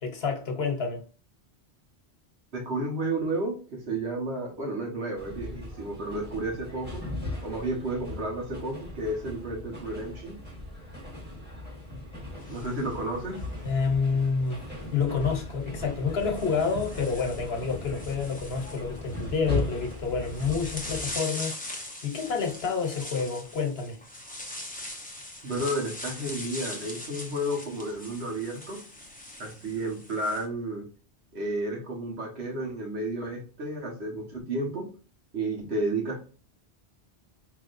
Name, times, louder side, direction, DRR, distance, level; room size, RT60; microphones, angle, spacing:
voice 1, 0.0-1.0 13.6-14.6 14.9-24.0, left 5 dB, 70° left, 1.2 m, -28 dB
voice 2, 2.5-7.0 7.4-10.3 12.5-13.4 25.4-28.8 29.4-30.8 31.3-34.9 35.3-36.2, right 1 dB, 85° right, 1.6 m, -32 dB
sound 1, 5.2-21.2, left 1 dB, 10° right, 1.4 m, -38 dB
sound 2, 12.4-13.9 15.1-15.3 16.1-30.4, left 1 dB, 10° left, 0.7 m, -41 dB
4.8 x 3.1 x 2.5 m
omnidirectional pair, 1.1 m